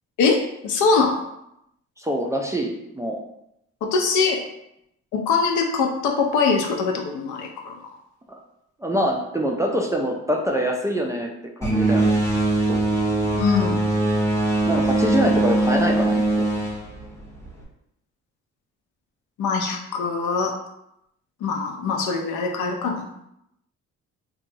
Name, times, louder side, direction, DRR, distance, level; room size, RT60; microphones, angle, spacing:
voice 1, 0.2-1.2 3.8-4.4 5.1-7.7 13.4-13.8 19.4-20.6 21.4-23.1, left 4 dB, 75° left, 3 dB, 0.6 m, -22 dB
voice 2, 2.0-3.2 8.3-8.4 8.8-12.2 12.7-12.8 14.7-16.4, equal, 10° right, 0 dB, 0.3 m, -25 dB
sound 1, 11.6-17.6, right 2 dB, 10° left, 0.7 m, -21 dB
2.8 x 2.2 x 2.6 m, 0.80 s
cardioid pair, 90°, 30 cm